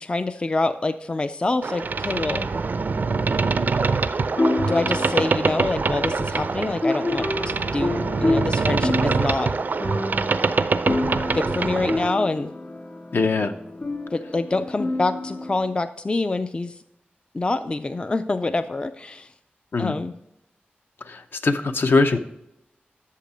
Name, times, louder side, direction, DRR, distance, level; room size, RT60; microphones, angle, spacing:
voice 1, 0.0-2.5 4.7-9.5 11.3-12.5 14.1-16.8 17.3-19.3 19.8-20.1, left 2 dB, 25° left, 10 dB, 0.3 m, -26 dB
Boat Water vehicle, 1.6-12.1, right 4 dB, 55° right, 0.4 m, -24 dB
sound 1, 4.4-15.6, left 2 dB, 45° left, 2.0 m, -29 dB
voice 2, 13.1-13.5 19.7-19.9 21.1-22.2, left 3 dB, 65° left, 8 dB, 0.7 m, -21 dB
8.4 x 6.8 x 5.0 m, 0.84 s
wide cardioid pair, 110°, 4 cm